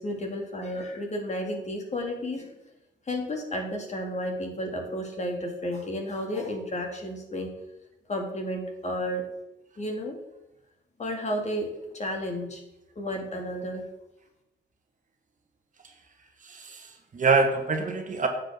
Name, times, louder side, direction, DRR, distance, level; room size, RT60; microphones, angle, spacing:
voice 1, 0.0-2.5 3.1-7.5 8.1-9.3 9.8-10.2 11.0-12.6 13.0-13.9, equal, 35° left, 2 dB, 2.2 m, -32 dB
voice 2, 16.4-18.3, right 4 dB, 40° right, 5 dB, 1.4 m, -25 dB
9.6 x 7.5 x 3.6 m, 0.91 s
cardioid pair, 90°, 20 cm